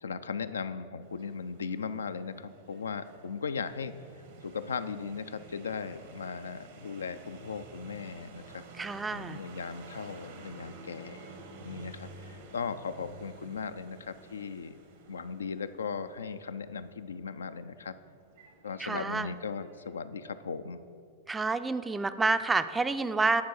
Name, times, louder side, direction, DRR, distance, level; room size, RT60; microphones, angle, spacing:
voice 1, 0.0-3.9 4.4-8.6 9.1-11.3 11.6-14.8 15.1-17.9 18.6-20.8, left 5 dB, 90° left, 11 dB, 0.3 m, -37 dB
sound 1, 1.0-20.0, right 3 dB, 70° right, 1.1 m, -51 dB
voice 2, 8.8-9.4 18.8-19.3 21.3-23.4, right 3 dB, 15° right, 12 dB, 0.3 m, -29 dB
9.5 x 3.7 x 6.3 m, 2.4 s
hypercardioid pair, 105°, 0 cm